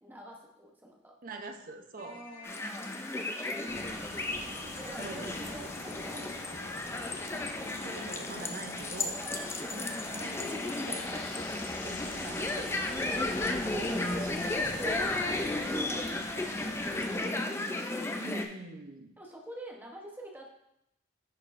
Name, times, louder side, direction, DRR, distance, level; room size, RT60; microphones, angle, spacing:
voice 1, 0.0-1.1 2.0-2.9 4.7-5.3 5.5-6.5 6.7-6.8 9.0-9.4 12.6-15.1 15.7-17.5 19.2-20.5, right 1 dB, 10° right, 0 dB, 0.8 m, -47 dB
voice 2, 1.2-2.2 5.0-5.6 7.6-9.2 9.7-13.4 13.9-14.9 18.1-19.1, right 2 dB, 45° right, 6 dB, 0.6 m, -45 dB
sound 1, 2.0-15.7, left 2 dB, 65° left, 1.1 m, -50 dB
sound 2, 2.4-18.4, left 2 dB, 15° left, 0.4 m, -34 dB
sound 3, 3.7-17.2, left 1 dB, 35° left, 0.9 m, -46 dB
10.0 x 4.4 x 2.5 m, 0.80 s
head